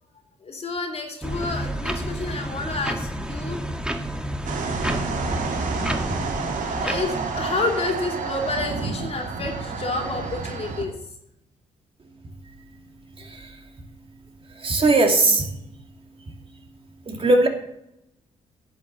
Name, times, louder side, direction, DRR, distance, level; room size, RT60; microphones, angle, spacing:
voice 1, 0.4-3.6 5.7-5.8 6.2-11.0, left 3 dB, 45° left, 2 dB, 3.0 m, -30 dB
sound 1, 1.2-8.0, equal, 5° right, 1.7 m, -30 dB
sound 2, 4.4-10.8, right 4 dB, 60° right, 2.1 m, -30 dB
voice 2, 13.2-13.6 14.6-15.5 17.1-17.5, right 2 dB, 40° right, 3 dB, 2.5 m, -19 dB
11.0 x 7.2 x 6.8 m, 0.79 s
supercardioid pair, 60°, 15 cm